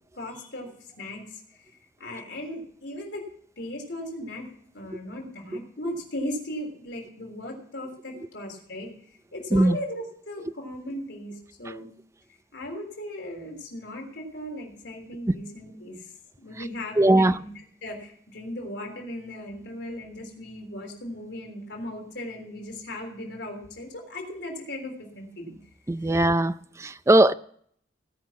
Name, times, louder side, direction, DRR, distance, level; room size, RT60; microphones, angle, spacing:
voice 1, 0.1-1.7 2.0-3.3 3.6-4.5 4.7-8.9 9.3-11.9 12.5-16.1 16.4-17.5 17.8-25.6, left 1 dB, 70° left, 3.5 m, -37 dB
voice 2, 17.0-17.4 25.9-27.3, right 1 dB, 15° right, 0.4 m, -20 dB
18.0 x 5.9 x 7.2 m
head